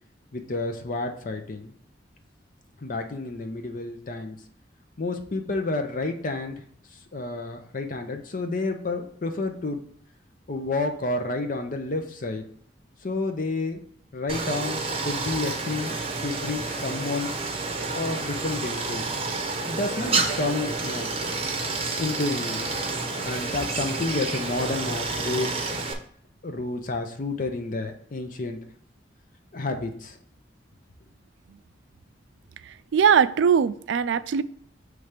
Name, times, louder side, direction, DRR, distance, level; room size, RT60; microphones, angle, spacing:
voice 1, 0.3-1.7 2.8-4.4 5.0-6.6 7.1-9.8 10.5-12.5 13.0-13.8 14.1-17.3 17.9-19.0 19.7-21.1 22.0-22.7 23.2-25.5 26.4-28.6 29.5-30.2, left 3 dB, 45° left, 5 dB, 0.6 m, -30 dB
Stream, 14.3-25.9, right 3 dB, 30° right, 0.7 m, -29 dB
voice 2, 32.6-34.4, right 7 dB, 85° right, 15 dB, 0.3 m, -21 dB
5.9 x 3.3 x 5.1 m, 0.62 s
head